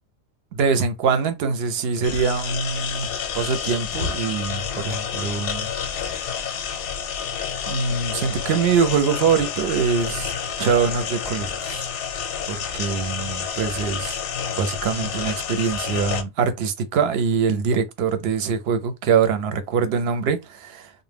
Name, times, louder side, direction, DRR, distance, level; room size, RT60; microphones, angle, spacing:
voice 1, 0.5-3.1 3.3-6.3 7.7-11.9 12.5-14.2 14.6-20.9, right 6 dB, 65° right, 0.8 m, -23 dB
sound 1, 2.0-16.2, left 7 dB, 85° left, 0.9 m, -29 dB
2.1 x 2.1 x 3.3 m
omnidirectional pair, 1.2 m